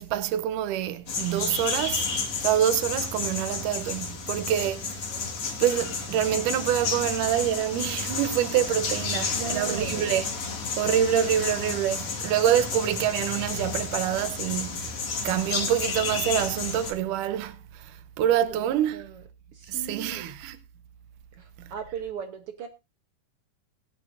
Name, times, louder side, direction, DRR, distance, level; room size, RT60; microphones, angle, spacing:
voice 1, 0.0-2.1 2.4-5.0 5.6-10.2 10.8-15.0 15.2-19.0 19.7-20.6, right 10 dB, 80° right, 2.4 m, -26 dB
sound 1, 1.1-16.9, left 4 dB, 50° left, 2.5 m, -31 dB
voice 2, 5.1-5.5 9.2-10.2 18.5-19.2 19.5-20.4 21.3-22.7, right 7 dB, 65° right, 1.5 m, -38 dB
21.0 x 8.7 x 2.6 m
omnidirectional pair, 3.7 m